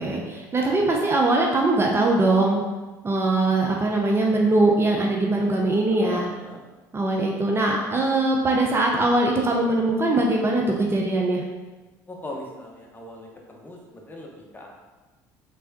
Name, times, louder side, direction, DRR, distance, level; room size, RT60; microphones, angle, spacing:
voice 1, 0.0-2.6 3.0-6.3 6.9-11.4, right 2 dB, 25° right, 0 dB, 0.6 m, -21 dB
voice 2, 6.0-6.6 12.1-14.7, left 1 dB, 20° left, -1 dB, 0.9 m, -39 dB
3.3 x 3.3 x 2.8 m, 1.2 s
hypercardioid pair, 65°, 9 cm